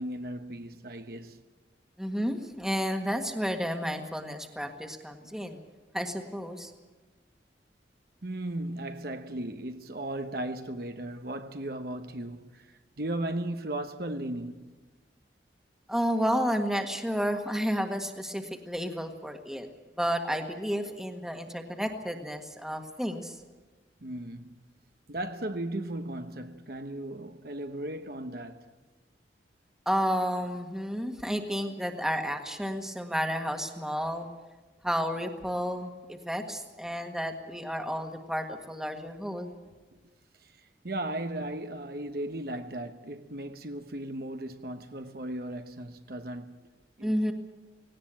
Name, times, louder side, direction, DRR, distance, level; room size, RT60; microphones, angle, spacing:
voice 1, 0.0-1.4 5.4-5.5 8.2-14.7 24.0-24.5 25.1-28.7 40.4-46.6 47.0-47.1, right 1 dB, 55° right, 1.1 m, -36 dB
voice 2, 2.0-5.6 5.9-6.7 15.9-19.7 20.0-23.3 29.8-34.3 34.8-39.5 47.0-47.3, equal, 5° right, 1.6 m, -31 dB
18.5 x 18.0 x 8.9 m
head